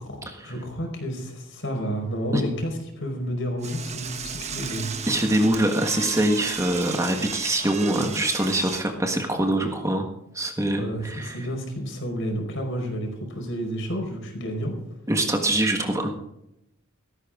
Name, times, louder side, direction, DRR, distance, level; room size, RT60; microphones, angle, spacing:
voice 1, 0.4-4.8 10.8-14.7, equal, 60° left, 3 dB, 5.0 m, -30 dB
Door / Toilet flush, 3.6-8.8, right 6 dB, 30° right, 1.3 m, -35 dB
voice 2, 5.1-10.1 10.3-11.4 15.1-16.1, right 1 dB, 15° right, 4 dB, 1.5 m, -24 dB
16.5 x 14.5 x 3.8 m, 0.82 s
head